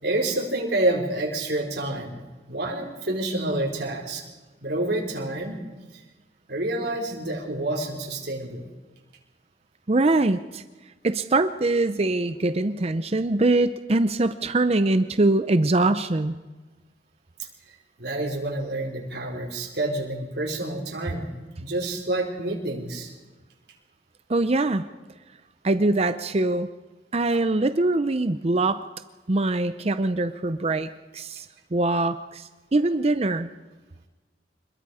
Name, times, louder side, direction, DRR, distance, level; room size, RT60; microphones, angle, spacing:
voice 1, 0.0-2.2 2.5-4.2 4.6-5.6 6.5-8.6 18.0-21.3 21.6-23.1, right 1 dB, 60° right, 0 dB, 4.4 m, -28 dB
voice 2, 9.9-10.6 11.0-16.4 24.3-24.9 25.6-26.7 27.1-28.8 29.3-31.5 31.7-33.5, right 2 dB, 35° right, 11 dB, 0.6 m, -23 dB
26.5 x 21.5 x 4.9 m, 1.2 s
head